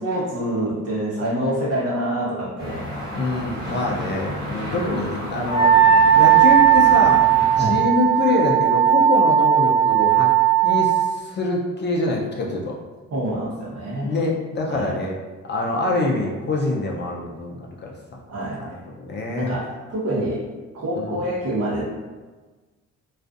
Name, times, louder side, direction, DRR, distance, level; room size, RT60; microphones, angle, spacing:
voice 1, 0.0-2.8 3.6-4.1 4.7-5.0 7.6-7.8 13.1-14.2 14.7-15.0 18.3-18.6 19.3-20.4 20.7-22.0, right 1 dB, 50° right, -6 dB, 1.0 m, -26 dB
sound 1, 2.6-7.6, equal, 35° right, 1.3 m, -32 dB
voice 2, 3.1-5.7 6.2-7.2 7.6-10.3 10.6-12.7 14.0-15.2 15.5-17.9 18.6-19.6 21.0-21.2, left 2 dB, 35° left, -2 dB, 0.5 m, -25 dB
Wind instrument woodwind instrument, 5.5-11.0, right 10 dB, 60° left, 0.8 m, -16 dB
2.4 x 2.4 x 2.4 m, 1.3 s
cardioid pair, 90°, 30 cm